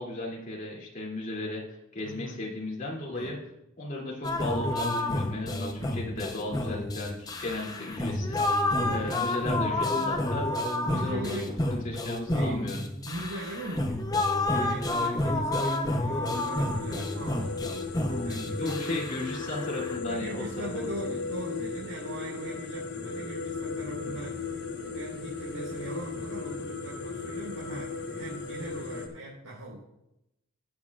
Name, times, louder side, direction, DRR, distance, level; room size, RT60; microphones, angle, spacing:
voice 1, 0.0-1.6 1.9-3.4 3.8-8.4 8.9-10.5 10.8-11.4 11.7-12.8 18.6-20.9 24.0-24.1, left 2 dB, 35° left, -4 dB, 2.7 m, -35 dB
voice 2, 2.0-2.4 3.1-3.3 8.8-9.2 10.9-11.6 12.3-12.6 13.0-14.0 14.5-17.5 18.2-19.0 20.0-29.8, right 2 dB, 80° right, -7 dB, 4.1 m, -40 dB
sound 1, 4.2-20.0, left 1 dB, 20° left, 0.7 m, -30 dB
sound 2, 16.3-29.1, left 4 dB, 55° left, 1.3 m, -36 dB
19.0 x 7.4 x 2.4 m, 0.86 s
head